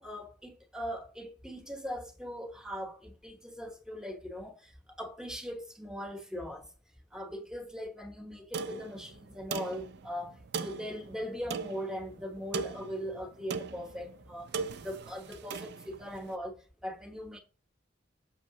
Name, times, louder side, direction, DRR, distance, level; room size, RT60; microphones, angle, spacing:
voice 1, 0.0-6.7 7.1-17.4, equal, 5° right, 1.0 m, -40 dB
sound 1, 8.5-16.3, right 5 dB, 60° right, 0.5 m, -40 dB
6.4 x 6.2 x 2.7 m
head